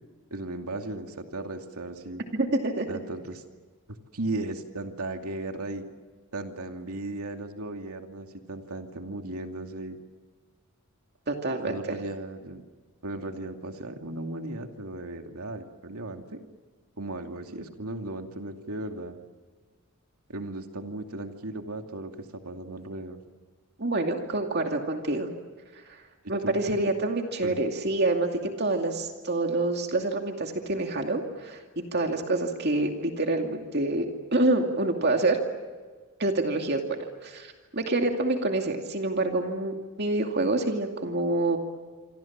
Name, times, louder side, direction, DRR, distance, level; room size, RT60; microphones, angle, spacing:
voice 1, 0.3-2.2 2.9-3.4 3.9-5.8 6.3-10.0 11.6-12.6 13.0-16.4 17.0-19.2 20.3-23.2 26.2-26.6 27.4-27.6, right 2 dB, 85° right, 4 dB, 2.5 m, -36 dB
voice 2, 2.3-3.0 11.3-12.0 23.8-25.3 25.9-26.0 26.3-35.4 36.2-41.6, right 2 dB, 50° right, 3 dB, 2.4 m, -27 dB
27.0 x 26.0 x 7.4 m, 1.4 s
head